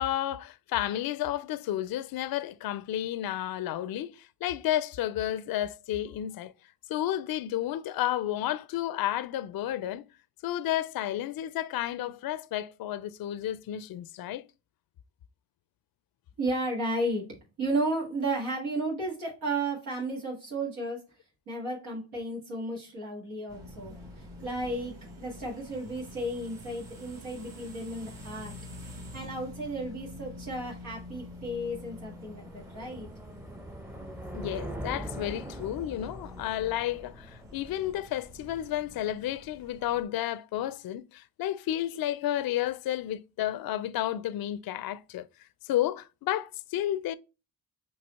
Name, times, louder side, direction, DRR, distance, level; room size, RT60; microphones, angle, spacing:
voice 1, 0.0-6.5 6.9-10.0 10.4-14.4 34.3-45.3 45.6-47.1, left 12 dB, 50° left, 0.5 m, -31 dB
voice 2, 16.4-17.3 17.6-21.0 21.5-28.5 29.1-33.1, right 1 dB, 85° right, 1.8 m, -33 dB
sound 1, 23.5-40.0, left 1 dB, 45° right, 1.5 m, -47 dB
sound 2, 31.1-38.4, equal, 5° right, 0.6 m, -43 dB
4.6 x 2.8 x 4.1 m
supercardioid pair, 45°, 47 cm